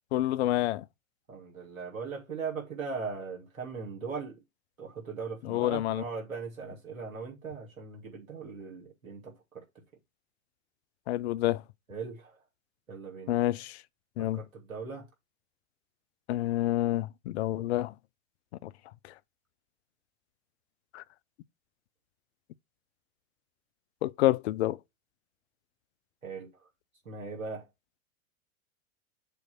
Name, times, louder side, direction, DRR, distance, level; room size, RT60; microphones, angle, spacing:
voice 1, 0.1-0.8 5.4-6.0 11.1-11.6 13.3-13.8 14.2-14.4 16.3-17.9 18.6-18.7 20.9-21.0 24.0-24.8, left 15 dB, 55° left, 0.6 m, -28 dB
voice 2, 1.3-4.4 4.8-9.6 11.9-12.3 12.9-13.3 14.2-15.1 26.2-26.5 27.0-27.6, right 5 dB, 80° right, 3.1 m, -39 dB
6.8 x 3.2 x 6.0 m
figure-of-eight pair, 95°, 40 cm